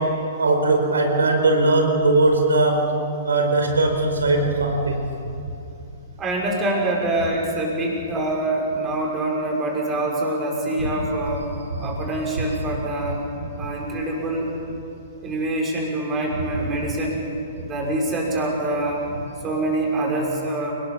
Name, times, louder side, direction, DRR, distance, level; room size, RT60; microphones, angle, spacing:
voice 1, 0.0-2.9 3.2-5.1 10.8-10.9 11.7-11.9 13.6-13.7, right 2 dB, 70° right, 4 dB, 4.9 m, -20 dB
voice 2, 6.2-11.5 11.8-13.2 13.6-14.5 15.2-17.3 17.6-19.0 19.4-20.7, right 1 dB, 20° right, -1 dB, 6.5 m, -25 dB
29.0 x 19.5 x 7.2 m, 2.6 s
figure-of-eight pair, 110°, 0 cm